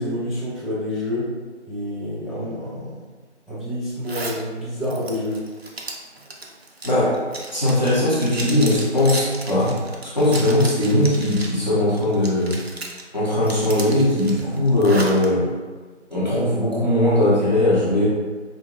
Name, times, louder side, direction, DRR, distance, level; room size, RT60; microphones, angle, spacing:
voice 1, 0.0-1.3 1.7-3.1 3.5-5.4, left 1 dB, ahead, -11 dB, 0.5 m, -28 dB
Zipper (clothing), 4.0-4.4 4.8-11.6 11.9-13.0 13.4-15.3, right 2 dB, 60° right, 0.6 m, -34 dB
voice 2, 7.5-9.7 10.0-12.6 13.1-15.4 16.1-18.1, left 1 dB, 40° left, -9 dB, 0.8 m, -19 dB
4.6 x 2.5 x 2.4 m, 1.4 s
figure-of-eight pair, 170°, 36 cm